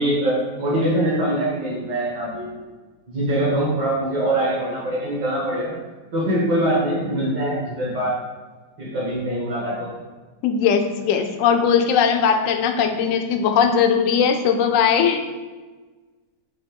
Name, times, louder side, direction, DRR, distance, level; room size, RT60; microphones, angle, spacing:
voice 1, 0.0-2.5 3.1-5.7 6.1-8.2 8.8-10.0, right 1 dB, 75° right, -7 dB, 2.8 m, -23 dB
voice 2, 10.4-15.2, left 7 dB, 65° left, 6 dB, 0.8 m, -19 dB
7.2 x 3.0 x 5.3 m, 1.3 s
omnidirectional pair, 1.9 m